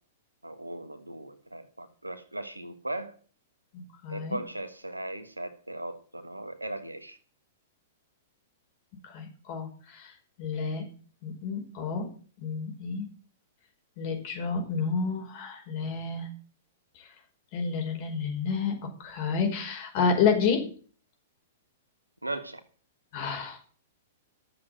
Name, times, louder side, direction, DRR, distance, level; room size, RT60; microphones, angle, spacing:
voice 1, 0.4-3.2 4.1-7.2 22.2-22.6, right 1 dB, 90° right, 10 dB, 1.5 m, -38 dB
voice 2, 3.7-4.4 9.1-10.1 10.4-10.8 11.2-12.1 12.4-13.0 14.0-16.3 17.5-20.7 23.1-23.6, left 5 dB, 45° left, 4 dB, 5.1 m, -30 dB
12.5 x 7.7 x 7.9 m, 0.42 s
figure-of-eight pair, 105°, 0 cm